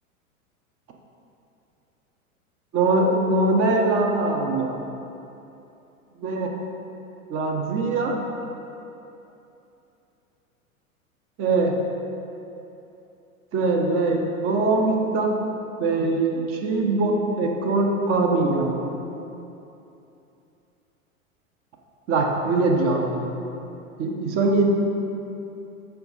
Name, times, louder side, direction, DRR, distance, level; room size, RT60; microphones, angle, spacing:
voice 1, 2.7-4.8 6.2-6.5 7.3-8.2 11.4-11.8 13.5-15.4 15.8-18.7 22.1-23.2 24.0-24.7, right 3 dB, 30° right, 1 dB, 0.8 m, -22 dB
6.8 x 5.0 x 4.0 m, 2.9 s
figure-of-eight pair, 95°, 42 cm